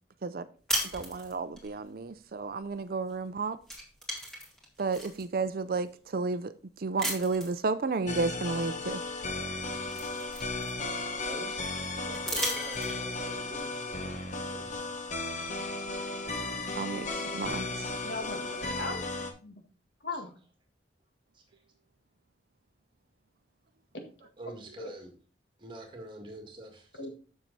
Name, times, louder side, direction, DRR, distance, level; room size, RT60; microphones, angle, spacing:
sound 1, 0.7-1.7 3.1-3.3 3.6-5.2 5.9-6.0 7.0-7.6 9.0-9.1 9.5-11.1 12.1-13.2, right 1 dB, 5° left, 2.3 m, -35 dB
voice 1, 0.9-3.6 4.8-9.0 16.8-17.9, right 4 dB, 55° right, 0.5 m, -32 dB
sound 2, 8.1-19.3, left 3 dB, 40° left, 1.1 m, -35 dB
voice 2, 11.2-15.1 16.6-16.7 20.1-20.2 21.3-21.6 24.4-25.1 25.6-27.0, right 1 dB, 25° right, 2.0 m, -47 dB
voice 3, 18.0-19.0 19.4-19.6 20.0-20.3 24.8-24.9 27.0-27.1, left 3 dB, 65° left, 1.8 m, -37 dB
7.5 x 6.5 x 4.0 m
head